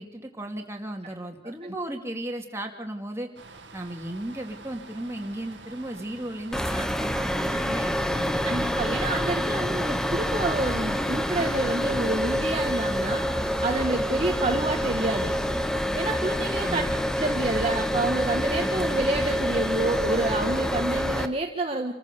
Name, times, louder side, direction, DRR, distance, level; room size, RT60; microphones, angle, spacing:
voice 1, 0.0-3.3 3.7-8.7 16.6-16.9 18.5-19.0, right 1 dB, 15° right, 2 dB, 2.4 m, -36 dB
sound 1, 3.4-20.7, right 3 dB, 80° right, 1.8 m, -47 dB
sound 2, 6.5-21.3, equal, 5° left, 0.9 m, -27 dB
voice 2, 8.4-13.2 13.6-15.3 15.9-16.8 17.2-21.9, right 2 dB, 30° right, 2 dB, 1.4 m, -28 dB
27.0 x 15.0 x 6.9 m, 0.87 s
head